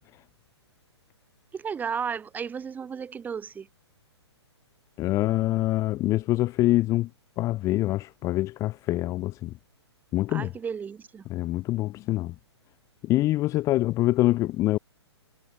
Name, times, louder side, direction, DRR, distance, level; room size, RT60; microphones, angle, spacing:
voice 1, 1.5-3.7 10.3-11.2, right 6 dB, 10° right, 2.2 m, -33 dB
voice 2, 5.0-7.1 7.4-9.5 10.1-10.5 11.3-12.3 13.0-14.8, left 16 dB, 20° left, 0.8 m, -25 dB
figure-of-eight pair, 120°, 15 cm